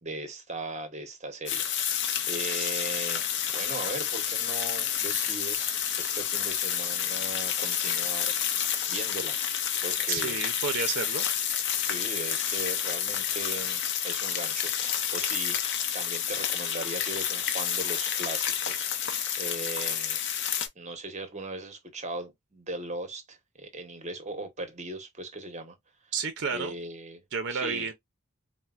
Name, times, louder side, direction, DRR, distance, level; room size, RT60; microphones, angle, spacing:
voice 1, 0.0-9.4 9.8-10.4 11.8-15.6 15.9-20.2 20.8-25.8 26.5-27.2 27.5-27.9, right 2 dB, 30° right, 0.8 m, -39 dB
sound 1, 1.5-20.7, left 9 dB, 55° left, 0.6 m, -29 dB
voice 2, 10.1-11.3 26.1-26.7 27.3-27.9, right 5 dB, 55° right, 0.5 m, -31 dB
4.3 x 2.1 x 2.3 m
head